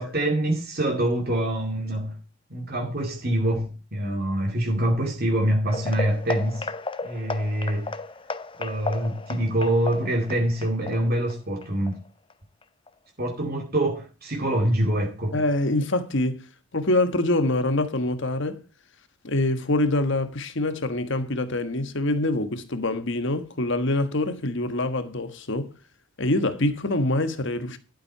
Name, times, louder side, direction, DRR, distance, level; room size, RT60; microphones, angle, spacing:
voice 1, 0.0-2.2 2.5-6.7 7.0-8.0 8.6-11.9 13.2-15.4, right 1 dB, 45° right, 2.3 m, -25 dB
sound 1, 5.7-12.3 12.6-12.9 13.3-13.4 13.9-14.0, left 3 dB, 25° left, 0.7 m, -34 dB
voice 2, 15.3-16.4 16.7-18.6 19.2-25.7 26.2-27.8, left 2 dB, 55° left, 1.4 m, -25 dB
12.0 x 7.8 x 4.6 m
head